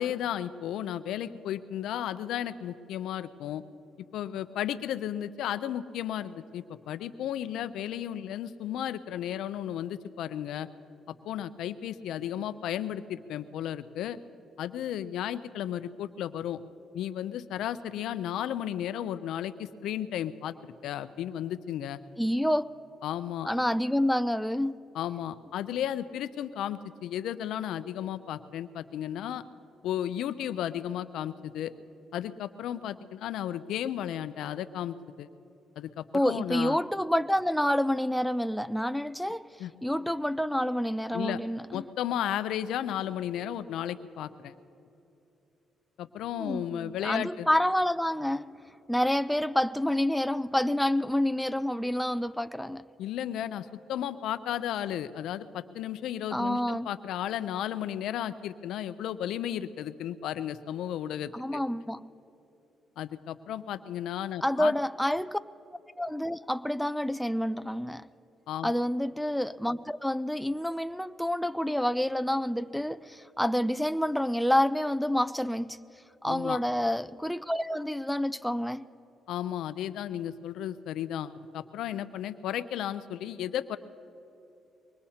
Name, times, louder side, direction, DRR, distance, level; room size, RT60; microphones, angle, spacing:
voice 1, 0.0-3.6 4.1-10.7 11.3-14.2 14.6-16.6 16.9-20.5 20.8-22.0 23.0-23.5 24.9-29.4 29.8-31.7 32.1-35.3 35.8-36.8 39.6-39.7 41.1-41.4 41.7-44.5 46.0-47.5 53.0-61.6 63.0-64.7 68.5-68.7 76.3-76.6 79.3-83.8, left 11 dB, 80° left, 0.5 m, -34 dB
voice 2, 22.2-22.7 23.4-24.7 36.1-39.5 39.8-41.8 46.4-48.5 48.9-52.8 56.3-56.9 61.3-62.1 64.4-65.4 66.0-68.1 68.6-75.8 76.2-78.9, left 1 dB, ahead, 0.4 m, -28 dB
23.5 x 21.0 x 2.8 m
cardioid pair, 90°, 0 cm